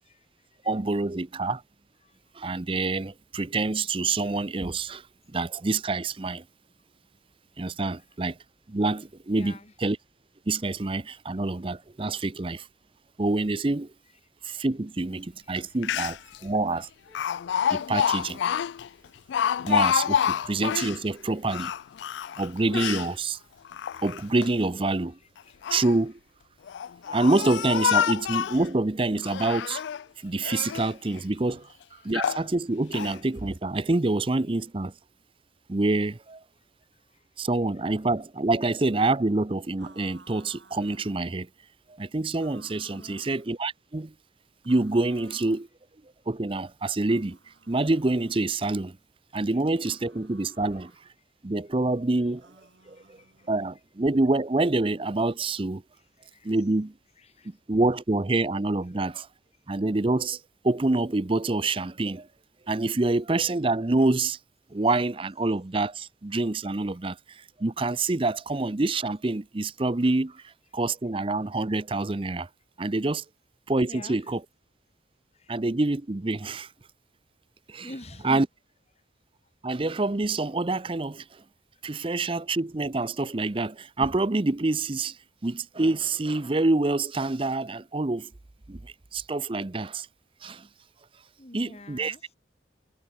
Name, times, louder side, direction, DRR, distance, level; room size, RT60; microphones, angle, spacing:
voice 1, 0.0-0.7 2.0-2.2 9.3-9.7 15.4-15.9 25.2-25.6 31.5-31.7 32.0-32.1 36.6-36.7 36.9-37.3 42.9-43.3 49.4-49.6 52.2-52.3 52.8-53.5 55.9-56.6 57.2-57.6 58.9-59.0 73.8-74.3 75.3-75.5 77.8-78.4 81.7-81.8 91.4-92.3, left 1 dB, 35° left, 3.1 m, -48 dB
voice 2, 0.6-1.6 2.3-5.0 5.3-6.4 7.6-8.4 8.7-10.0 10.5-12.7 13.2-13.9 14.4-16.9 17.7-18.4 19.6-21.7 22.4-23.4 24.0-25.2 25.7-26.2 27.1-29.8 30.2-31.6 32.0-34.9 35.7-36.4 37.4-41.5 42.0-44.1 44.7-45.7 46.3-47.4 47.7-49.0 49.3-50.9 51.4-52.5 52.9-53.2 53.5-55.8 56.4-56.9 57.4-59.3 59.7-62.3 62.7-64.4 64.7-72.5 72.8-73.2 73.7-74.4 75.5-76.7 77.7-77.9 78.2-78.5 79.6-81.4 81.8-88.3 88.7-90.1 90.4-90.7 91.5-92.1, right 2 dB, 30° right, 0.6 m, -26 dB
Speech, 15.6-15.7 15.8-16.4 17.2-21.0 21.5-23.1 23.7-24.5 25.4-26.0 26.7-28.7 29.2-30.0 30.4-30.9 31.5-31.6 32.1-32.5 32.9-33.2, left 8 dB, 70° left, 0.3 m, -28 dB
sound 1, 39.8-41.2 42.4-43.5 44.6-45.7 47.0-48.4 49.8-51.0 52.4-53.7, right 3 dB, 75° right, 5.2 m, -57 dB
head